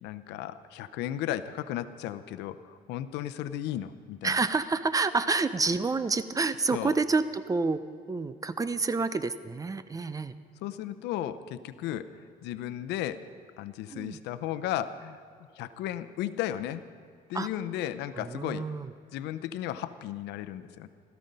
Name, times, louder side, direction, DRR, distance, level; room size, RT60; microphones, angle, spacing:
voice 1, 0.0-4.4 6.7-6.9 10.6-13.3 13.6-15.2 15.5-16.8 17.3-18.7 19.1-20.9, left 12 dB, 85° left, 12 dB, 0.7 m, -35 dB
voice 2, 4.2-7.8 8.1-10.3 13.9-14.2 17.3-17.5 18.1-18.9, right 4 dB, 20° right, 13 dB, 0.6 m, -28 dB
17.0 x 14.0 x 5.4 m, 2.2 s
cardioid pair, 110°, 17 cm